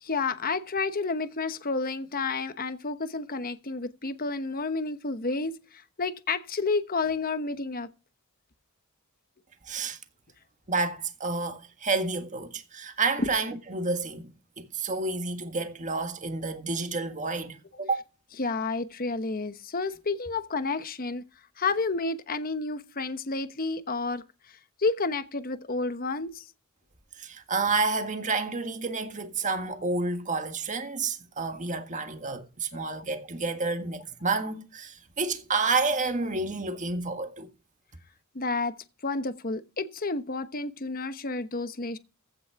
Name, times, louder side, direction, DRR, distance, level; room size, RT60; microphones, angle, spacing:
voice 1, 0.0-7.9 13.2-13.3 18.4-21.2 21.6-26.5 32.7-32.8 38.3-38.8 39.0-42.0, left 3 dB, 40° left, 1.1 m, -30 dB
voice 2, 9.7-10.0 10.7-14.3 14.6-18.0 27.2-37.5, right 3 dB, 35° right, 1.7 m, -30 dB
15.5 x 6.2 x 4.7 m
head